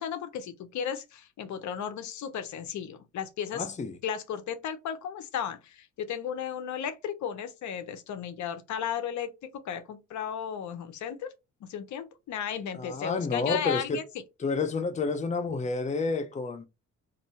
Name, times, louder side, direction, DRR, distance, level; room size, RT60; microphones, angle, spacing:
voice 1, 0.0-3.7 4.0-11.3 11.6-14.0, left 8 dB, 70° left, 0.7 m, -34 dB
voice 2, 3.5-4.0 12.7-14.0 14.4-16.7, left 4 dB, 25° left, 0.6 m, -30 dB
2.7 x 2.6 x 4.3 m
cardioid pair, 90°, 30 cm